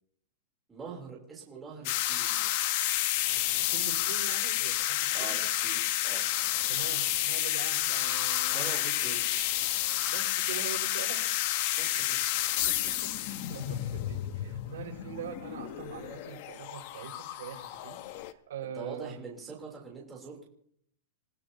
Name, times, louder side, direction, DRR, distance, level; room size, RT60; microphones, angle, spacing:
voice 1, 0.7-2.5 5.1-6.3 8.5-9.3 11.7-12.2 18.6-20.4, right 5 dB, 10° right, -4 dB, 3.4 m, -44 dB
sound 1, 1.8-18.3, left 14 dB, 40° left, 0.8 m, -30 dB
voice 2, 3.4-5.4 6.7-8.9 10.1-11.2 12.6-12.9 13.2-19.2, right 8 dB, 85° right, -1 dB, 5.7 m, -43 dB
29.0 x 16.0 x 2.9 m, 0.68 s
supercardioid pair, 175°, 0 cm